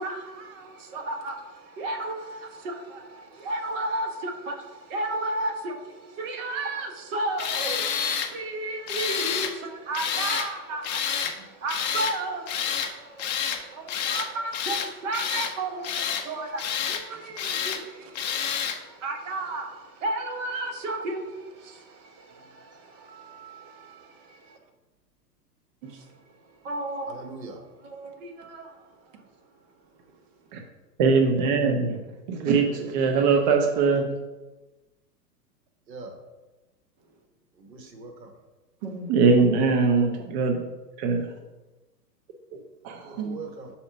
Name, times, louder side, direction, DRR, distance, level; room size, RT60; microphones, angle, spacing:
voice 1, 0.0-24.6 25.8-26.1 26.6-27.5 27.8-28.9 29.1-29.2 38.8-39.1 43.2-43.4, right 2 dB, 50° right, 1.2 m, -34 dB
Tools, 7.4-8.3 8.9-9.5 9.9-10.5 10.8-11.3 11.7-12.2 12.5-12.9 13.2-13.6 13.9-14.3 14.5-15.5 15.8-16.3 16.6-17.0 17.4-17.8 18.2-18.8, left 8 dB, 30° left, 0.4 m, -28 dB
voice 2, 22.9-24.1 27.1-27.6 32.6-32.9 35.9-36.1 37.6-38.3 43.0-43.7, right 4 dB, 80° right, 1.5 m, -42 dB
voice 3, 31.0-32.0 32.3-34.1 39.1-40.6 41.0-41.3 42.8-43.2, right 4 dB, 30° right, 0.5 m, -21 dB
4.8 x 4.3 x 5.8 m
hypercardioid pair, 130°, 50 cm